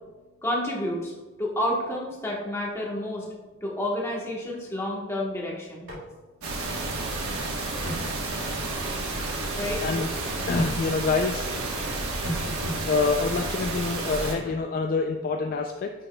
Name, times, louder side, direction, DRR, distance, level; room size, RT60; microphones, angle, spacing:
voice 1, 0.4-1.1 1.4-3.3 3.6-5.9 9.6-9.8, left 1 dB, 10° left, -3 dB, 1.1 m, -29 dB
sound 1, 5.9-6.1 6.3-6.4 7.8-8.1 10.5-10.7 12.2-12.8 14.4-14.6, equal, 60° right, 2.1 m, -32 dB
sound 2, 6.4-14.4, right 2 dB, 80° right, 1.1 m, -31 dB
voice 2, 10.5-11.5 12.9-15.9, left 4 dB, 40° left, 3 dB, 0.3 m, -27 dB
8.7 x 6.1 x 2.2 m, 1.2 s
head